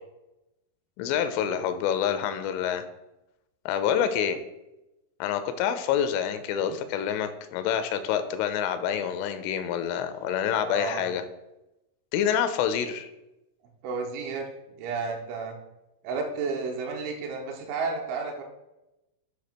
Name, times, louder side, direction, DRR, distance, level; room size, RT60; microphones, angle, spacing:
voice 1, 1.0-2.8 3.7-4.4 5.2-11.2 12.1-13.1, left 8 dB, 85° left, 10 dB, 3.1 m, -27 dB
voice 2, 10.6-11.1 13.8-14.5 14.8-15.6 16.0-18.4, right 4 dB, 80° right, 1 dB, 3.3 m, -32 dB
8.0 x 2.8 x 6.0 m, 0.96 s
omnidirectional pair, 5.5 m